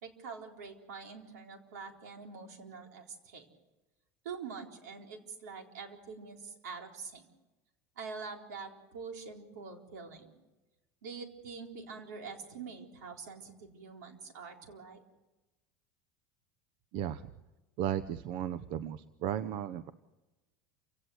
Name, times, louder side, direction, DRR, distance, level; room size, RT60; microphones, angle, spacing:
voice 1, 0.0-3.5 4.2-7.3 8.0-10.3 11.0-15.0, right 5 dB, 85° right, 3 dB, 4.0 m, -45 dB
voice 2, 17.8-19.9, right 11 dB, 60° right, 13 dB, 0.9 m, -35 dB
28.5 x 17.0 x 7.9 m, 1.1 s
supercardioid pair, 100°, 9 cm